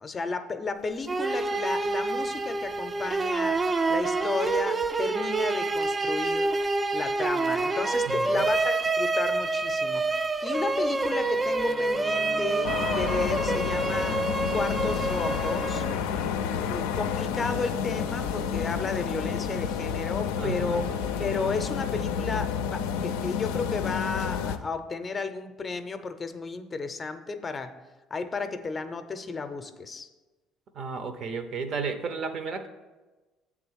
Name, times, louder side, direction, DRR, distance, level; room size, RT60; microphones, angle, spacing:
voice 1, 0.0-3.6 3.9-6.5 6.9-14.2 14.5-15.8 16.7-20.8 21.2-27.8 28.1-30.1, left 4 dB, 35° left, 9 dB, 0.6 m, -33 dB
sound 1, 1.1-16.1, right 3 dB, 25° right, 0.3 m, -27 dB
voice 2, 8.1-8.5 20.4-20.9 30.7-32.7, right 5 dB, 55° right, 9 dB, 0.7 m, -33 dB
sound 2, 10.5-22.5, right 1 dB, 90° right, 2.5 m, -43 dB
sound 3, 12.6-24.6, left 7 dB, 85° left, 0.4 m, -30 dB
7.7 x 3.7 x 6.2 m, 1.2 s
supercardioid pair, 80°, 0 cm